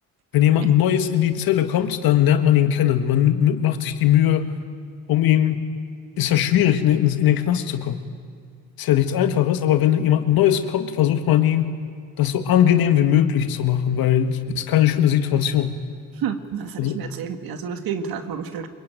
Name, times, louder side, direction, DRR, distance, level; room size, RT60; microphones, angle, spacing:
voice 1, 0.3-4.5 5.1-5.6 6.2-8.0 8.8-11.7 12.2-15.8 16.8-17.0, left 11 dB, 85° left, 8 dB, 1.8 m, -19 dB
voice 2, 16.2-18.7, right 7 dB, 80° right, 7 dB, 2.1 m, -30 dB
24.5 x 23.0 x 9.3 m, 2.1 s
supercardioid pair, 65°, 35 cm